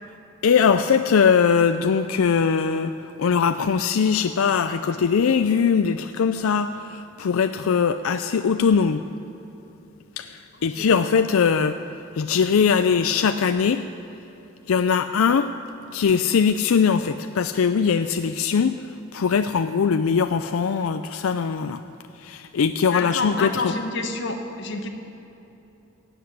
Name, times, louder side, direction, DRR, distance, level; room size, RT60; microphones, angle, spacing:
voice 1, 0.4-2.9 3.2-9.0 10.2-11.8 12.2-13.8 14.7-15.5 15.9-18.7 19.1-21.8 22.2-23.7, left 6 dB, 90° left, 9 dB, 0.4 m, -21 dB
voice 2, 22.9-24.9, left 3 dB, 60° left, 4 dB, 1.3 m, -28 dB
16.0 x 8.0 x 9.4 m, 3.0 s
head